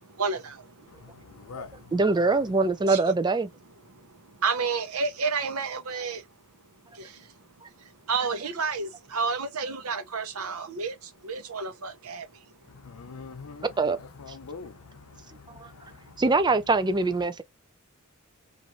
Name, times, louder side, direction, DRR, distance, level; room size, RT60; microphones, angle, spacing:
voice 1, 0.2-0.5 2.9-3.0 4.4-6.2 8.1-10.9 11.3-12.2, right 5 dB, 80° right, 0.8 m, -29 dB
voice 2, 0.9-1.9 2.2-2.3 12.7-16.2, left 4 dB, 85° left, 0.7 m, -45 dB
voice 3, 1.9-3.5 7.6-7.7 13.8-14.0 15.6-15.7 16.2-17.4, right 3 dB, 20° right, 0.4 m, -23 dB
3.0 x 2.6 x 2.5 m
head